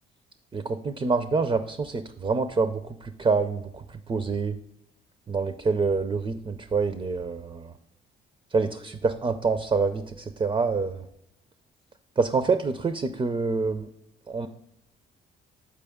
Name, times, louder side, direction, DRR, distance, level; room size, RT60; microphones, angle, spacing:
voice 1, 0.5-4.6 5.3-7.7 8.5-11.1 12.2-13.9 14.3-14.5, right 4 dB, 25° right, 9 dB, 0.4 m, -26 dB
6.8 x 4.8 x 3.5 m, 0.82 s
cardioid pair, 90°, 20 cm